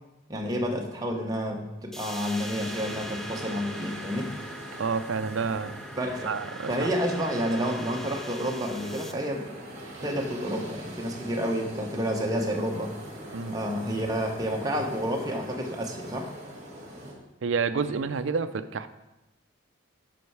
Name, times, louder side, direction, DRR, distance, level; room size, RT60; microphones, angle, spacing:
voice 1, 0.3-4.3 6.0-6.3 6.7-9.5 10.0-13.0 13.5-16.3, equal, 15° right, 0 dB, 0.9 m, -30 dB
Analog Ocean, 1.9-9.1, equal, ahead, 0.3 m, -41 dB
sound 1, 2.5-17.1, right 1 dB, 35° right, 1.9 m, -42 dB
voice 2, 4.8-5.8 6.2-6.9 13.3-13.6 17.4-18.9, right 5 dB, 65° right, 11 dB, 0.4 m, -29 dB
8.3 x 5.6 x 4.7 m, 0.98 s
head